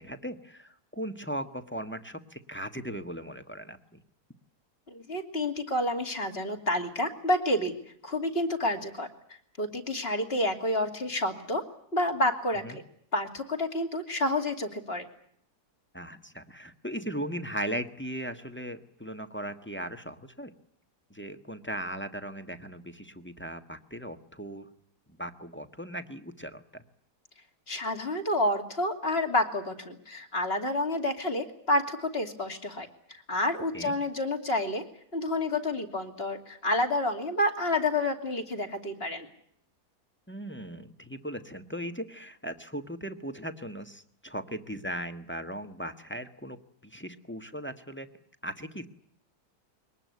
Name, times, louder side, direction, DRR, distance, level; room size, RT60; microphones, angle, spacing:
voice 1, 0.0-4.0 12.6-12.8 15.9-20.5 21.1-24.7 25.1-26.8 33.7-33.9 40.3-48.1 48.4-48.9, equal, 5° left, 7 dB, 1.3 m, -38 dB
voice 2, 4.9-7.7 8.0-9.1 9.6-11.6 11.9-12.8 13.1-15.0 27.7-34.8 35.1-39.3, left 1 dB, 35° left, 5 dB, 3.0 m, -29 dB
23.5 x 19.5 x 9.5 m, 0.67 s
omnidirectional pair, 1.8 m